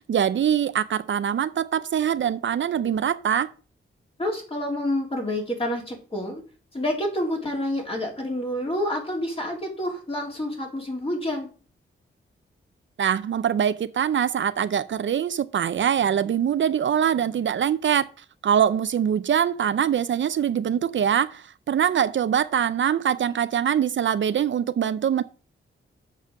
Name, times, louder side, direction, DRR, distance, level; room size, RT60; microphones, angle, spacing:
voice 1, 0.0-3.5 13.0-25.2, right 9 dB, 65° right, 0.5 m, -23 dB
voice 2, 4.2-6.4 6.7-11.5, left 1 dB, 25° left, 3.5 m, -28 dB
7.4 x 5.5 x 6.5 m
wide cardioid pair, 110°, 21 cm